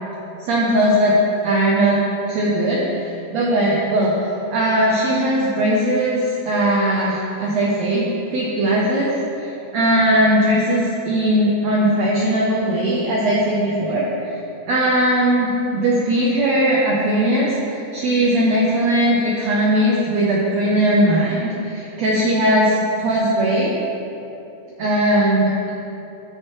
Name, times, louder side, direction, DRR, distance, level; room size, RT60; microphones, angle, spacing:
voice 1, 0.4-1.2 1.4-2.0 2.3-4.1 4.5-8.1 8.3-9.1 9.4-14.3 14.7-23.7 24.8-25.7, right 1 dB, 85° right, -4 dB, 1.5 m, -19 dB
12.5 x 6.8 x 3.1 m, 3.0 s
omnidirectional pair, 4.2 m